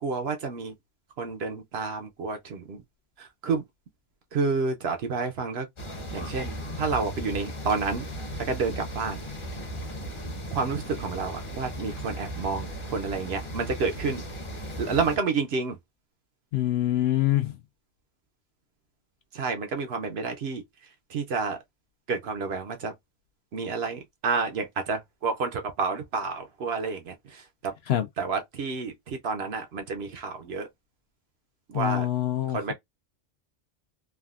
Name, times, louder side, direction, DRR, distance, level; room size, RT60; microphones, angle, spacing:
voice 1, 0.0-0.7 1.2-2.8 3.2-3.6 4.3-5.7 6.1-8.0 8.4-9.2 10.5-14.2 14.8-15.8 19.3-20.6 21.1-21.6 22.1-22.9 23.5-27.7 28.2-30.7 31.7-32.1 32.5-32.7, right 4 dB, 60° right, 0.8 m, -30 dB
sound 1, 5.8-15.2, equal, 25° left, 0.8 m, -36 dB
voice 2, 16.5-17.5 27.9-28.0 31.7-32.7, left 13 dB, 65° left, 0.7 m, -25 dB
3.4 x 2.2 x 2.3 m
omnidirectional pair, 1.3 m